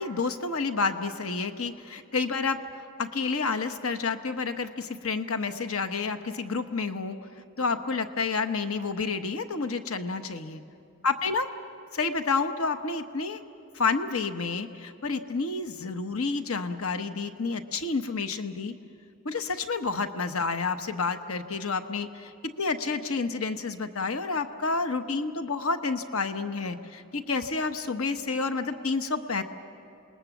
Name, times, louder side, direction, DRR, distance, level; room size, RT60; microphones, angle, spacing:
voice 1, 0.0-2.6 3.0-7.2 7.6-10.6 11.0-11.5 11.9-13.4 13.7-18.7 19.2-22.3 22.6-29.4, left 4 dB, 90° left, 8 dB, 1.1 m, -29 dB
27.5 x 20.5 x 7.2 m, 2.7 s
head